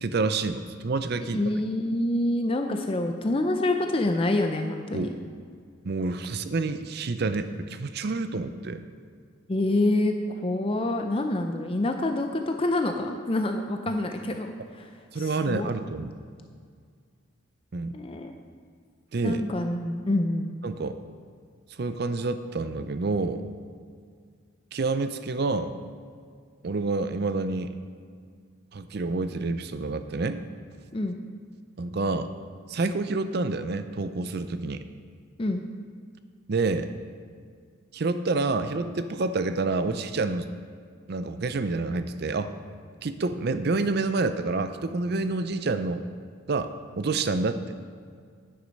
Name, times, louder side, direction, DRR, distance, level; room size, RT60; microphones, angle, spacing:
voice 1, 0.0-1.4 4.9-5.1 5.8-8.8 15.1-16.2 17.7-17.9 19.1-19.4 20.6-21.0 21.8-23.5 24.7-25.7 26.6-27.7 28.7-30.4 31.8-32.3 32.7-34.9 36.5-36.9 37.9-40.5 41.1-42.5 43.0-46.1 46.5-47.6, right 3 dB, 55° right, 10 dB, 0.5 m, -28 dB
voice 2, 1.3-5.1 9.5-14.9 15.2-15.7 17.9-18.3 19.2-20.5 30.9-31.2 35.4-35.6, left 1 dB, 25° left, 5 dB, 0.5 m, -27 dB
9.7 x 9.6 x 5.3 m, 2.1 s
head